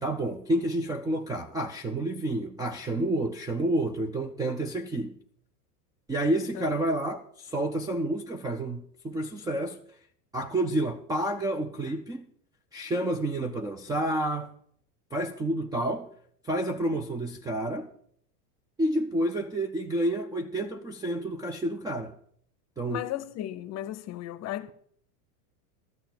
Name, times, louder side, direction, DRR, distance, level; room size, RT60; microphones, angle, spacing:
voice 1, 0.0-5.2 6.1-9.8 10.3-12.3 12.7-14.5 15.1-16.1 16.4-17.9 18.8-22.1 22.8-23.1, right 1 dB, 10° right, 0.4 m, -29 dB
voice 2, 22.9-24.7, left 13 dB, 35° left, 0.8 m, -35 dB
13.0 x 6.8 x 7.5 m
supercardioid pair, 120°, 47 cm